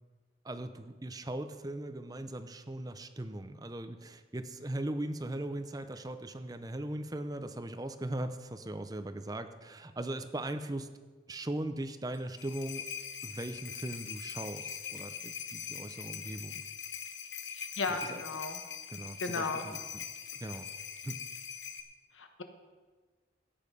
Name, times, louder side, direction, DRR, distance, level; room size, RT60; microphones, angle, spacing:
voice 1, 0.4-10.9 11.3-12.8 13.2-16.6 17.9-18.2 18.9-20.0 20.4-20.7 21.0-21.2, right 1 dB, 20° right, 10 dB, 0.6 m, -39 dB
sound 1, 12.1-21.8, left 8 dB, 70° left, 1.1 m, -42 dB
voice 2, 17.5-18.6 19.2-19.6 22.1-22.4, left 3 dB, 90° left, 6 dB, 1.3 m, -35 dB
15.0 x 8.8 x 5.4 m, 1.4 s
head